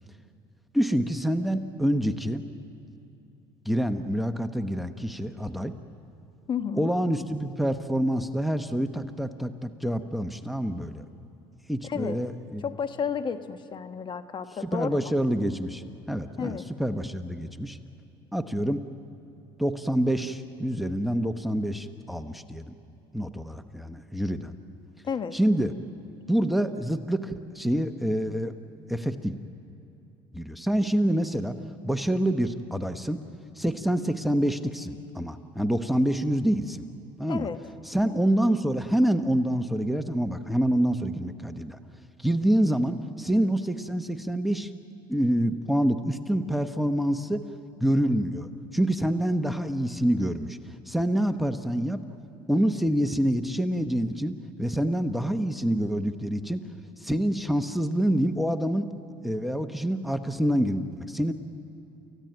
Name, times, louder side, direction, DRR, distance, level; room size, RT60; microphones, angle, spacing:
voice 1, 0.7-2.4 3.6-5.7 6.8-11.0 11.7-12.6 14.6-17.8 18.3-18.8 19.6-22.7 23.1-24.5 25.3-25.7 26.3-28.5 28.9-29.4 30.3-31.5 31.8-33.2 33.6-36.8 37.2-37.5 37.9-41.8 42.2-44.7 45.1-47.4 47.8-50.6 50.9-52.0 52.5-56.6 57.0-58.9 59.2-61.3, right 1 dB, ahead, 8 dB, 1.1 m, -26 dB
voice 2, 6.5-6.9 11.8-12.2 12.6-15.1 16.4-16.6 25.0-25.3 37.3-37.6, left 7 dB, 45° left, 9 dB, 1.3 m, -32 dB
29.0 x 15.5 x 9.1 m, 2.8 s
supercardioid pair, 80°, 12 cm